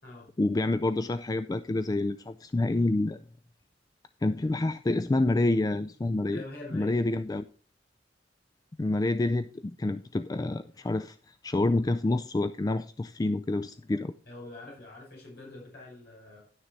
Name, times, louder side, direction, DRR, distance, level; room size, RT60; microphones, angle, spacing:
voice 1, 0.4-3.2 4.2-6.4 6.7-7.5 8.8-14.1, left 2 dB, 20° left, 0.3 m, -28 dB
voice 2, 6.3-7.0 14.3-16.4, left 2 dB, 60° left, 5.6 m, -44 dB
11.0 x 6.6 x 4.4 m
head